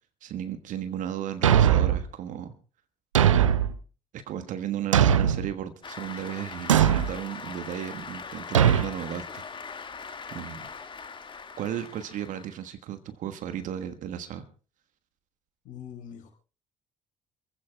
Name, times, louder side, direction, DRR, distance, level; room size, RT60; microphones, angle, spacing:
voice 1, 0.2-2.5 4.1-9.4 10.3-10.7 11.6-14.4, right 10 dB, 55° right, 9 dB, 1.3 m, -35 dB
Thump thud, 1.4-2.0 3.1-3.7 4.9-5.5 6.7-7.1 8.5-8.9, right 9 dB, 80° right, 0.6 m, -20 dB
Cheering / Applause, 5.8-12.7, left 5 dB, 30° left, 1.8 m, -41 dB
voice 2, 15.7-16.3, left 8 dB, 55° left, 3 dB, 5.0 m, -42 dB
28.5 x 15.5 x 2.2 m, 0.36 s
figure-of-eight pair, 50°, 16 cm